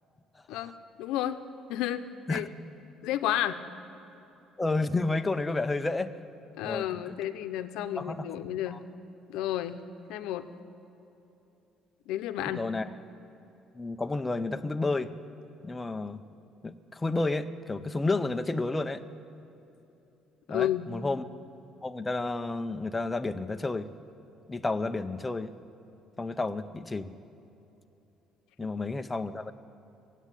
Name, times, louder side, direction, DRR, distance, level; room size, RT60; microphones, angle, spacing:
voice 1, 0.5-1.4 1.7-2.5 3.0-3.6 6.6-8.8 9.3-9.8 10.1-10.5 12.1-12.7 20.5-20.9, left 12 dB, 90° left, 9 dB, 0.7 m, -31 dB
voice 2, 4.6-6.1 6.6-7.1 8.0-8.3 8.7-8.8 12.5-12.9 13.8-15.1 15.6-16.2 16.6-19.0 20.5-21.2 21.8-23.9 24.5-25.5 26.2-27.1 28.6-29.5, left 2 dB, 10° left, 9 dB, 0.4 m, -31 dB
16.0 x 8.3 x 9.0 m, 3.0 s
cardioid pair, 155°, 0 cm